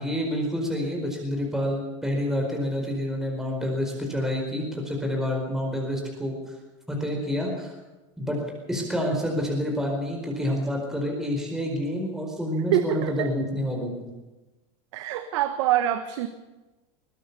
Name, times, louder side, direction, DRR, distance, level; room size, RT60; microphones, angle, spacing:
voice 1, 0.0-6.5 6.9-7.7 8.2-8.4 8.7-14.1, equal, 5° right, 0 dB, 4.6 m, -28 dB
voice 2, 12.7-13.3 14.9-16.3, right 12 dB, 70° right, 9 dB, 1.5 m, -25 dB
21.5 x 17.5 x 7.0 m, 1.1 s
supercardioid pair, 150°, 15 cm